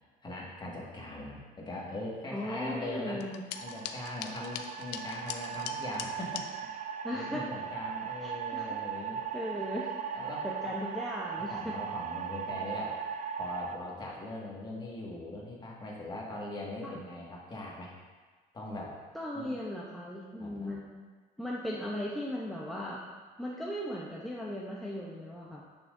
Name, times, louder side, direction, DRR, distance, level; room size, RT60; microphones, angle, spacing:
voice 1, 0.2-3.2 3.6-6.8 7.1-9.2 10.1-10.7 11.3-13.0 13.4-17.9 18.5-19.0 19.3-19.5 20.4-20.7, left 2 dB, 25° left, -3 dB, 1.8 m, -41 dB
voice 2, 2.3-3.4 7.0-7.4 8.2-8.7 9.3-10.2 10.6-11.7 16.8-17.0 19.1-21.1 21.4-23.0 23.4-25.6, left 1 dB, ahead, -5 dB, 0.8 m, -37 dB
sound 1, 3.2-6.5, left 9 dB, 90° left, 0.5 m, -41 dB
sound 2, 3.5-13.8, right 8 dB, 45° right, 0.5 m, -38 dB
10.0 x 6.2 x 2.6 m, 1.4 s
cardioid pair, 110°, 17 cm